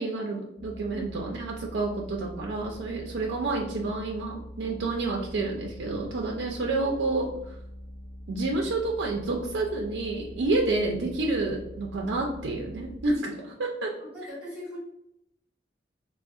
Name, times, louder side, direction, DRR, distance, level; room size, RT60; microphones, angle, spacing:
voice 1, 0.0-7.6 8.3-13.9, right 2 dB, 75° right, -1 dB, 0.4 m, -29 dB
sound 1, 0.6-13.2, equal, 55° left, 1.0 m, -44 dB
voice 2, 14.0-14.8, equal, 10° right, -8 dB, 1.5 m, -39 dB
3.6 x 2.0 x 2.3 m, 0.79 s
head